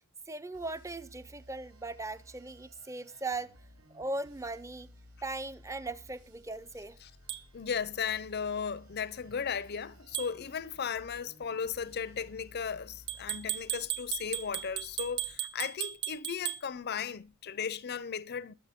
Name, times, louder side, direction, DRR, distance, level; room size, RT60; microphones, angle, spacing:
voice 1, 0.3-3.5 3.9-4.9 5.2-7.0, right 2 dB, 15° right, 0.6 m, -38 dB
sound 1, 0.5-15.3, equal, 80° right, 6.9 m, -57 dB
sound 2, 7.3-7.4 10.1-10.3 13.1-16.6, right 13 dB, 60° right, 1.3 m, -36 dB
voice 2, 7.5-18.5, left 7 dB, 50° left, 0.6 m, -36 dB
21.5 x 7.3 x 3.6 m
head